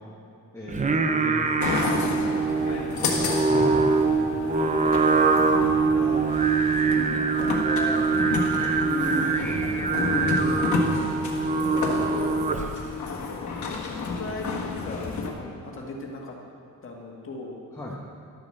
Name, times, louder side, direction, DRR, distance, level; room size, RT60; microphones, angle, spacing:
voice 1, 0.5-2.7 3.0-3.9 4.4-4.5 17.7-18.0, left 1 dB, 10° left, -3 dB, 1.1 m, -37 dB
Singing, 0.7-12.9, right 4 dB, 20° right, 0.6 m, -23 dB
sound 1, 1.6-15.3, left 4 dB, 55° left, 1.5 m, -31 dB
voice 2, 5.5-6.4 6.9-12.1 13.0-13.2 14.0-16.4 16.8-17.6, left 2 dB, 40° left, -1 dB, 1.7 m, -37 dB
12.0 x 8.9 x 6.5 m, 2.6 s
wide cardioid pair, 170°, 34 cm